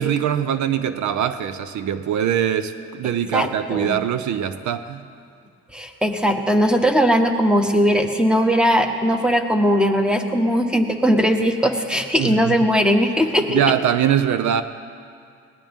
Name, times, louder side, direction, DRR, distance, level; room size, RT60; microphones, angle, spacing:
voice 1, 0.0-5.0 12.2-12.6 13.5-14.6, right 9 dB, 70° right, 11 dB, 0.8 m, -22 dB
voice 2, 3.3-3.9 5.7-13.6, equal, 5° right, 5 dB, 1.4 m, -19 dB
21.0 x 18.5 x 3.7 m, 2.3 s
cardioid pair, 90°, 30 cm